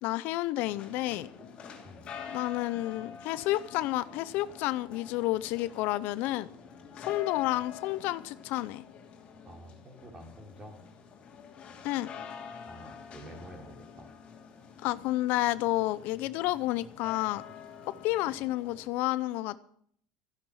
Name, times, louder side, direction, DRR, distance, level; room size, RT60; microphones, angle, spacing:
voice 1, 0.0-1.3 2.3-6.5 7.1-8.8 11.8-12.1 14.8-17.4 18.0-19.6, left 16 dB, 60° left, 16 dB, 0.5 m, -30 dB
sound 1, 0.6-18.9, left 7 dB, 35° left, 2.8 m, -47 dB
voice 2, 9.4-10.8 12.6-14.1, right 1 dB, 25° right, 2 dB, 3.2 m, -49 dB
14.5 x 10.0 x 6.3 m, 0.64 s
supercardioid pair, 135°, 3 cm